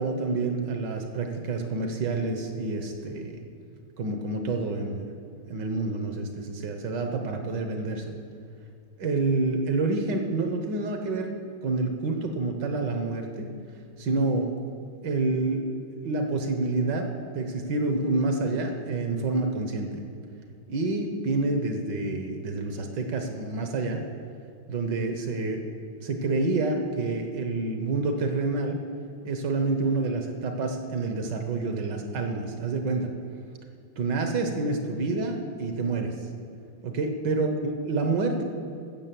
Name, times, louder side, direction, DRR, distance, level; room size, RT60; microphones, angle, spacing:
voice 1, 0.0-3.5 4.0-5.1 5.5-8.1 9.0-11.3 11.6-13.5 14.0-14.5 15.0-15.7 16.0-17.1 17.3-20.0 20.7-24.0 24.7-25.7 26.0-28.8 29.2-33.1 34.0-36.1 36.8-38.4, right 3 dB, 60° right, 5 dB, 1.5 m, -28 dB
12.5 x 7.4 x 7.6 m, 2.4 s
omnidirectional pair, 2.3 m